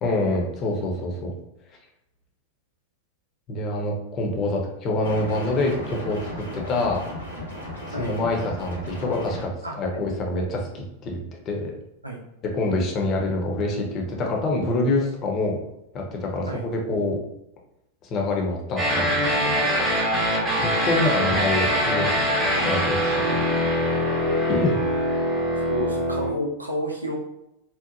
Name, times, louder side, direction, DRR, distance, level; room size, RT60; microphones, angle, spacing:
voice 1, 0.0-1.3 3.5-7.0 8.0-9.5 9.8-11.7 12.5-15.6 15.9-17.2 18.1-19.3 20.6-23.3 24.5-24.8, left 2 dB, 30° left, 0 dB, 0.6 m, -26 dB
sound 1, 5.0-9.4, equal, 75° left, 1.0 m, -35 dB
voice 2, 9.6-10.0 12.0-12.2 16.5-16.6 20.2-20.4 23.3-23.5 25.7-27.1, equal, 85° right, -1 dB, 0.5 m, -31 dB
sound 2, 18.8-26.3, equal, 15° right, 0.9 m, -23 dB
2.8 x 2.1 x 2.5 m, 0.87 s
figure-of-eight pair, 90°, 0 cm